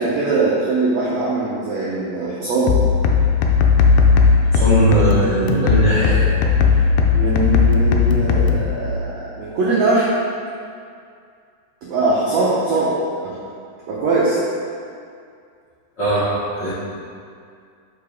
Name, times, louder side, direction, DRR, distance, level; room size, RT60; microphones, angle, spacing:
voice 1, 0.0-2.7 7.1-10.1 11.9-12.9 13.2-13.3 13.9-14.4, right 3 dB, 85° right, -7 dB, 1.5 m, -21 dB
sound 1, 2.7-8.7, left 5 dB, 80° left, 2.1 m, -16 dB
voice 2, 4.5-6.4 16.0-16.7, right 2 dB, 65° left, -13 dB, 1.1 m, -19 dB
6.9 x 5.4 x 3.5 m, 2.3 s
omnidirectional pair, 4.3 m